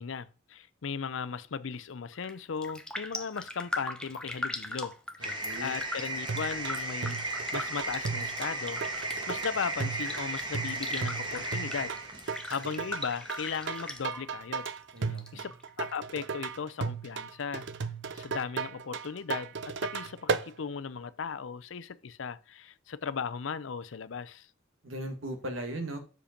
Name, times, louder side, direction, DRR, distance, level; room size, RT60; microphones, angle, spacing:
voice 1, 0.0-8.8 9.3-11.9 12.2-14.7 15.3-15.5 15.8-17.7 18.1-24.5, left 6 dB, 70° left, 0.5 m, -37 dB
Raindrop, 2.1-2.4 2.6-14.7 15.0-16.0 16.4-16.5, left 1 dB, 5° left, 0.8 m, -40 dB
sound 1, 5.2-14.0, right 2 dB, 25° right, 1.3 m, -36 dB
voice 2, 5.2-5.7 14.9-15.5 24.8-26.0, right 1 dB, 80° right, 1.7 m, -38 dB
sound 2, 6.3-20.5, right 5 dB, 65° right, 0.6 m, -36 dB
6.7 x 5.0 x 5.1 m
head